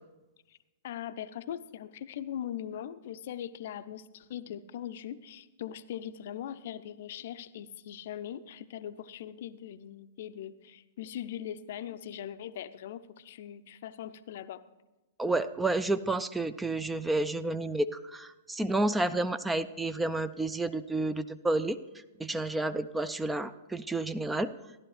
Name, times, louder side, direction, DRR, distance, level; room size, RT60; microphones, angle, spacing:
voice 1, 0.8-14.6, left 10 dB, 60° left, 13 dB, 0.5 m, -40 dB
voice 2, 15.2-21.8 22.2-24.5, right 2 dB, 10° right, 13 dB, 0.4 m, -30 dB
15.0 x 11.5 x 3.2 m, 1.1 s
figure-of-eight pair, 110°, 0 cm